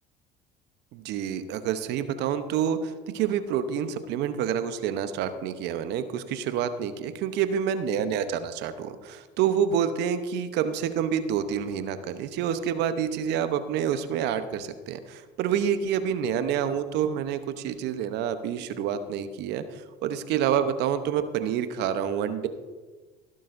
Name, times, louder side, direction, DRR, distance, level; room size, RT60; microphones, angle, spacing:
voice 1, 0.9-22.5, right 8 dB, 60° right, 10 dB, 0.9 m, -28 dB
16.0 x 11.5 x 2.6 m, 1.3 s
hypercardioid pair, 65°, 19 cm